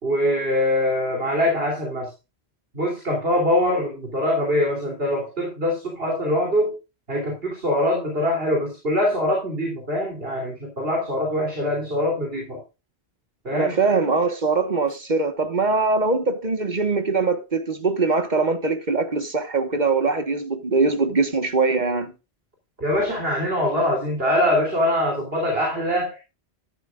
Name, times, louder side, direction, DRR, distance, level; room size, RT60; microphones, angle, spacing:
voice 1, 0.0-2.1 2.7-6.8 7.1-12.6 13.4-13.8 22.8-26.2, left 1 dB, 60° right, 3.4 m, -23 dB
voice 2, 13.5-22.1, right 4 dB, 45° right, 1.5 m, -22 dB
13.0 x 11.5 x 2.4 m
omnidirectional pair, 1.1 m